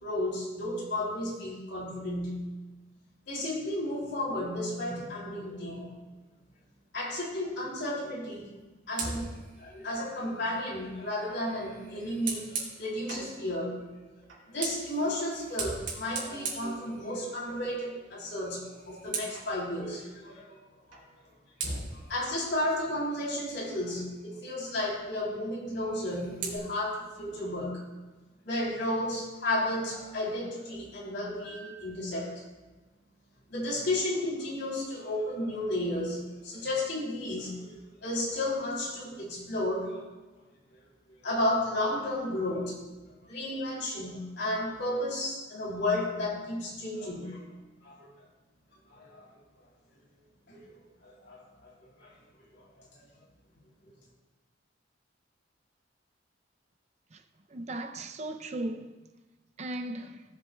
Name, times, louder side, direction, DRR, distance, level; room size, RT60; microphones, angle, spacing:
voice 1, 0.0-2.4 3.3-6.0 6.9-8.5 8.9-9.3 9.6-13.9 14.5-20.6 20.9-21.0 22.1-27.8 28.4-32.4 33.5-37.6 38.0-40.0 41.2-42.8 43.2-47.4 47.8-48.0 48.9-49.3 50.5-50.7 51.0-51.7 52.0-52.1 52.5-52.6, left 1 dB, 65° left, 3.2 m, -33 dB
Fire, 8.9-13.3 14.2-17.5 17.8-18.1 18.4-19.5 20.9-21.1 21.6-23.9 25.8-26.6, right 4 dB, 70° right, 2.8 m, -40 dB
voice 2, 57.5-59.0 59.6-60.2, right 1 dB, 35° right, 0.5 m, -37 dB
17.0 x 7.7 x 2.2 m
head